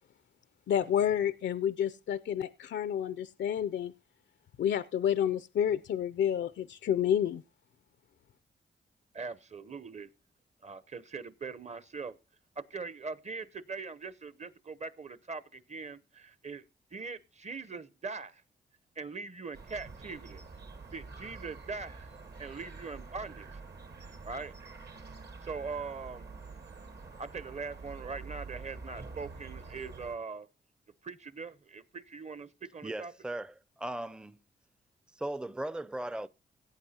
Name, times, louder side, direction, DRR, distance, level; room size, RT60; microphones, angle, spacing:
voice 1, 0.7-3.9 4.6-7.4, left 9 dB, 65° left, 0.4 m, -29 dB
voice 2, 9.1-10.1 10.6-12.2 12.6-16.6 16.9-18.4 19.0-20.4 20.9-22.1 22.4-23.6 24.2-24.5 25.4-26.3 27.2-30.5 31.0-33.1, right 4 dB, 35° right, 0.7 m, -41 dB
sound 1, 19.5-30.1, right 4 dB, 60° right, 1.3 m, -47 dB
voice 3, 32.8-34.4 35.2-36.3, right 1 dB, 5° right, 0.4 m, -38 dB
17.0 x 8.3 x 2.8 m
cardioid pair, 50°, 20 cm